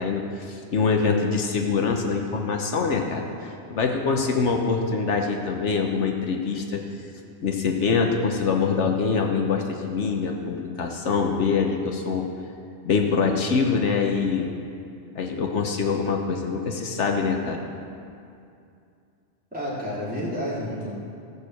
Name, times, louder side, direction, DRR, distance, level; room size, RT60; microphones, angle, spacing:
voice 1, 0.0-6.8 7.4-12.3 12.8-14.5 15.2-17.6, left 5 dB, 75° left, 2 dB, 1.2 m, -24 dB
voice 2, 19.5-20.9, equal, 5° right, -9 dB, 3.6 m, -30 dB
14.5 x 6.6 x 7.7 m, 2.5 s
omnidirectional pair, 1.2 m